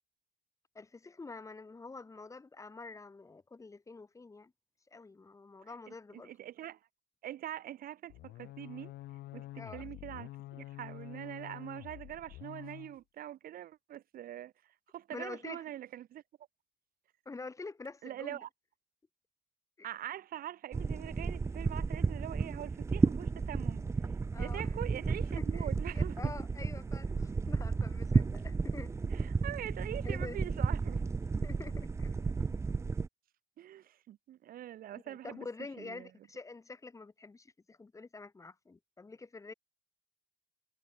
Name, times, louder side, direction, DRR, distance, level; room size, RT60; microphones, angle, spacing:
voice 1, 0.7-4.5 4.9-6.3 9.5-9.9 15.1-15.6 17.2-18.4 19.8-19.9 24.3-24.7 25.3-25.7 25.9-28.9 30.0-30.4 31.4-32.2 35.1-39.5, left 3 dB, 20° left, 1.5 m, -47 dB
voice 2, 5.6-6.8 7.2-8.9 9.3-16.2 18.0-18.5 19.8-23.8 24.4-26.2 29.1-31.0 33.6-35.5 35.8-36.1, right 12 dB, 60° right, 0.9 m, -44 dB
sound 1, 8.1-13.0, left 16 dB, 80° left, 1.6 m, -48 dB
sound 2, 20.7-33.1, right 4 dB, 15° right, 0.4 m, -33 dB
cardioid pair, 120°, 17 cm